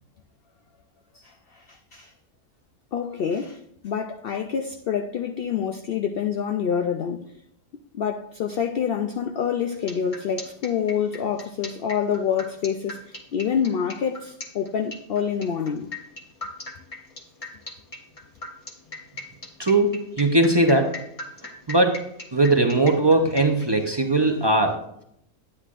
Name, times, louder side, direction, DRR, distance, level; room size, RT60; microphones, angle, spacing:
voice 1, 1.1-2.1 2.9-7.3 7.9-15.9, left 7 dB, 75° left, 0.5 m, -27 dB
sound 1, 9.7-23.6, left 2 dB, 25° left, 1.1 m, -39 dB
voice 2, 19.6-20.9 21.7-22.0 22.3-24.8, right 2 dB, 30° right, 0.5 m, -19 dB
9.8 x 9.7 x 2.5 m
omnidirectional pair, 1.5 m